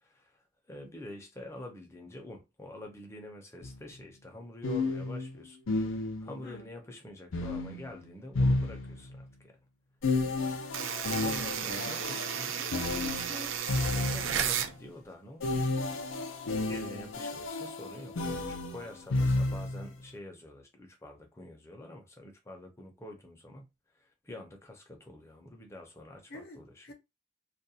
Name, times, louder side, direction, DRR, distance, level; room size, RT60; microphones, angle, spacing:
voice 1, 0.0-5.6 5.9-9.5 11.1-12.6 13.9-15.6 15.9-16.3 16.6-23.7 24.0-26.9, left 1 dB, 15° left, 0.6 m, -47 dB
sound 1, 3.6-3.8 4.6-6.4 7.3-9.2 10.0-14.5 15.4-19.9, left 2 dB, 85° left, 0.6 m, -32 dB
voice 2, 6.4-6.7 11.8-13.5 26.3-26.9, left 1 dB, 55° left, 0.7 m, -46 dB
sound 2, 10.7-14.7, right 8 dB, 85° right, 0.4 m, -33 dB
2.4 x 2.2 x 2.7 m
head